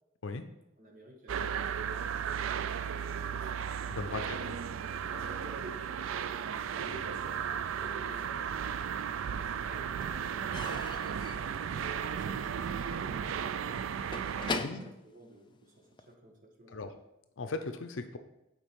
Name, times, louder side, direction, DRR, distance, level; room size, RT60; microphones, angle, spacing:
voice 1, 0.8-2.9 4.1-4.5 4.9-6.0 6.7-8.5 9.3-10.8 11.7-13.2 14.3-16.8, equal, 40° right, 0 dB, 1.4 m, -52 dB
sound 1, 1.3-14.6, right 7 dB, 80° right, 0.4 m, -35 dB
voice 2, 3.9-4.4 14.5-14.8 16.7-16.9 17.4-18.2, left 3 dB, 75° left, 8 dB, 0.6 m, -37 dB
Slam / Squeak / Wood, 8.3-9.1 9.4-16.1, left 4 dB, 25° left, 0.4 m, -43 dB
7.3 x 4.7 x 5.2 m, 0.90 s
head